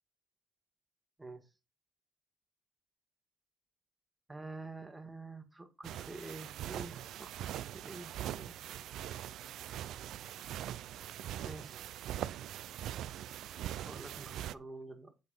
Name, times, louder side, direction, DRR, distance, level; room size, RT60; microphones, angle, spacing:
voice 1, 4.3-8.6 11.4-11.9 13.8-15.1, right 2 dB, 15° right, 1.9 m, -48 dB
sound 1, 5.8-14.5, right 12 dB, 80° right, 0.4 m, -42 dB
8.4 x 4.0 x 5.3 m
cardioid pair, 90°, 0 cm